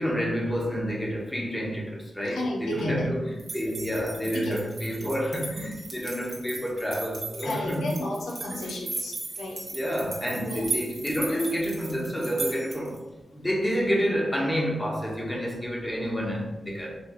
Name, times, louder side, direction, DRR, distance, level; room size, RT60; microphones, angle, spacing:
voice 1, 0.0-7.9 8.5-8.7 9.7-13.0 13.3-17.0, equal, 15° left, -2 dB, 1.4 m, -29 dB
voice 2, 2.3-3.1 4.4-4.6 5.0-5.1 7.4-9.7 10.4-10.6, left 1 dB, 85° left, -1 dB, 0.9 m, -33 dB
sound 1, 3.4-13.0, right 3 dB, 50° right, 1.3 m, -37 dB
5.2 x 3.1 x 3.1 m, 1.0 s
cardioid pair, 50°, 0 cm